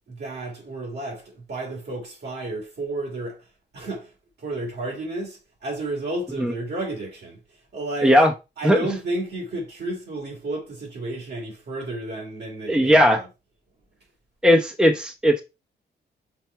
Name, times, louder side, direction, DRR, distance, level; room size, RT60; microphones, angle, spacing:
voice 1, 0.1-8.2 8.6-13.3, right 2 dB, 65° right, 3.1 m, -32 dB
voice 2, 12.7-13.2 14.4-15.4, equal, 5° right, 0.9 m, -17 dB
5.9 x 4.3 x 4.7 m
cardioid pair, 80°, 18 cm